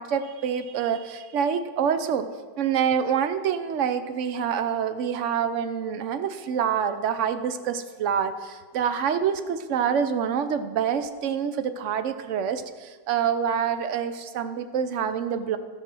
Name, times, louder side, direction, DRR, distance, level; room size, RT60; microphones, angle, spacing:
voice 1, 0.0-2.3 2.6-15.6, right 7 dB, 65° right, 10 dB, 0.8 m, -26 dB
14.0 x 5.5 x 6.1 m, 1.4 s
omnidirectional pair, 1.8 m